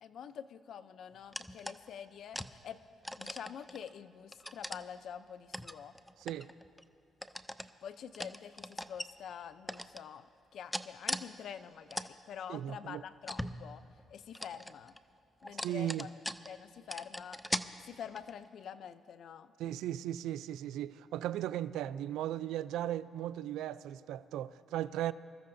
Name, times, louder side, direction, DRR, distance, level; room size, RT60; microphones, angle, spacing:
voice 1, 0.0-2.8 3.2-6.0 7.6-13.8 14.1-15.0 15.4-16.2 16.5-17.4 17.8-19.5, left 8 dB, 65° left, 0.5 m, -47 dB
sound 1, 1.3-1.9 2.3-2.5 3.0-3.9 4.3-4.8 5.5-6.8 7.2-7.7 8.1-9.1 9.7-10.0 10.7-11.3 11.6-12.1 12.5-12.6 13.3-14.0 14.3-15.0 15.4-16.6 16.9-17.7 18.1-18.5, equal, 5° left, 0.4 m, -40 dB
voice 2, 12.5-13.0 15.6-16.1 19.6-25.1, right 12 dB, 85° right, 0.3 m, -37 dB
26.0 x 14.0 x 2.6 m
cardioid pair, 90°, 0 cm